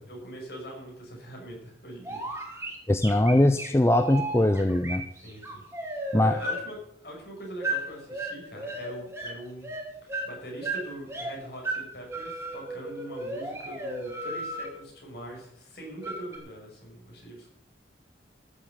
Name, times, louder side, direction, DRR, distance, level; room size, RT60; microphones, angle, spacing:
voice 1, 0.0-2.2 5.2-5.6 5.9-6.8 7.0-9.7 10.2-17.5, right 1 dB, 60° left, -1 dB, 5.9 m, -42 dB
sound 1, 2.0-6.6 7.6-7.8 8.1-9.3 9.6-11.3 11.6-11.8 12.1-14.7 16.0-16.4, right 1 dB, 15° right, 2.9 m, -34 dB
voice 2, 2.9-5.1 6.1-6.4, left 1 dB, 15° left, 9 dB, 0.5 m, -21 dB
14.5 x 7.3 x 8.0 m, 0.78 s
head